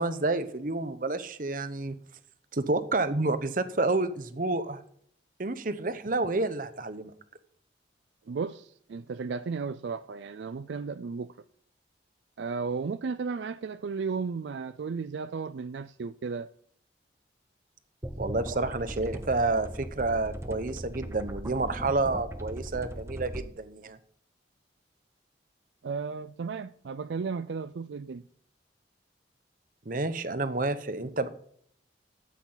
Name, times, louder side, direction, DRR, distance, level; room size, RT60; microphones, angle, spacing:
voice 1, 0.0-2.0 2.5-4.8 5.4-7.1 18.2-24.0 29.9-31.3, right 2 dB, 50° right, 0.9 m, -29 dB
voice 2, 8.3-11.3 12.4-16.5 18.5-18.7 25.8-28.2, right 5 dB, 75° right, 0.4 m, -34 dB
sound 1, 18.0-23.4, right 1 dB, 15° right, 0.8 m, -38 dB
13.0 x 8.3 x 3.9 m
head